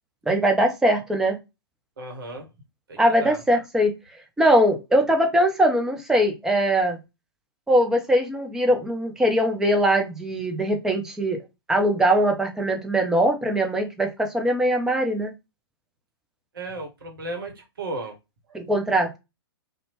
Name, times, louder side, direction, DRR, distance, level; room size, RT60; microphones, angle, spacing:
voice 1, 0.3-1.4 3.0-3.9 4.4-7.0 7.7-11.4 11.7-15.3 18.5-19.1, right 1 dB, 5° right, 0.5 m, -21 dB
voice 2, 2.0-2.5 2.9-3.4 16.5-18.2, right 2 dB, 60° right, 0.9 m, -35 dB
2.7 x 2.1 x 2.8 m
figure-of-eight pair, 110°, 13 cm